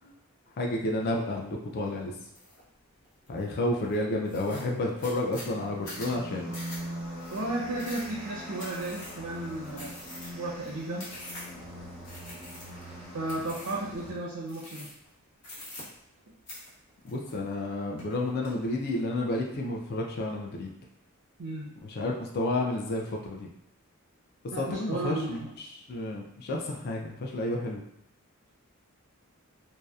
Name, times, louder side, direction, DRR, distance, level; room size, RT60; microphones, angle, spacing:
voice 1, 0.6-2.1 3.3-6.5 17.0-20.7 21.8-23.5 24.4-27.8, left 1 dB, 45° left, 0 dB, 0.4 m, -31 dB
sound 1, 2.3-2.6 3.0-3.5 3.9-4.0 4.3-11.6 12.0-12.9 13.3-13.9 14.5-15.1 15.4-16.2 16.5-17.7 18.0-18.5, left 1 dB, 85° left, 0.9 m, -45 dB
sound 2, 5.1-14.1, equal, 10° left, 0.7 m, -42 dB
voice 2, 7.3-11.1 13.1-14.9 21.4-21.7 24.5-25.5, right 2 dB, 80° right, -5 dB, 0.5 m, -34 dB
2.7 x 2.0 x 2.3 m, 0.80 s
head